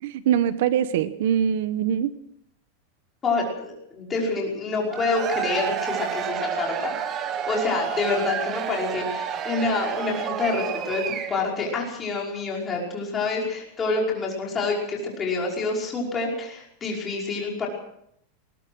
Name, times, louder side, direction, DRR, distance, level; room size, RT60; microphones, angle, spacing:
voice 1, 0.0-2.1, right 9 dB, 60° right, 13 dB, 1.1 m, -23 dB
voice 2, 3.2-17.7, left 3 dB, 15° left, -2 dB, 5.2 m, -27 dB
Cheering / Crowd, 4.8-11.6, right 8 dB, 20° right, 1.3 m, -30 dB
20.5 x 20.0 x 6.2 m, 0.71 s
supercardioid pair, 180°, 0 cm